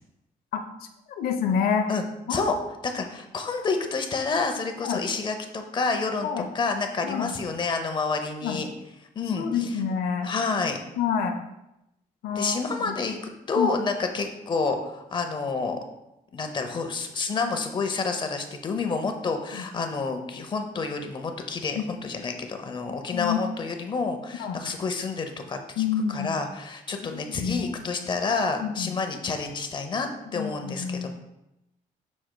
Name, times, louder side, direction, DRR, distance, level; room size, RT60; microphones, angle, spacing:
voice 1, 1.2-1.9 2.3-2.5 4.8-5.0 6.2-6.5 7.0-7.3 8.4-8.6 9.4-10.3 11.0-11.4 12.2-12.6 12.8-13.0 13.6-13.7 23.1-23.4 24.4-24.6 25.8-26.3 27.1-27.7 28.6-29.0 30.3-31.1, left 7 dB, 80° left, 5 dB, 0.7 m, -27 dB
voice 2, 2.8-8.7 9.2-9.8 10.2-10.8 12.3-15.8 16.3-31.1, left 4 dB, 30° left, 5 dB, 0.7 m, -29 dB
7.6 x 6.3 x 2.2 m, 0.89 s
cardioid pair, 160°, 15 cm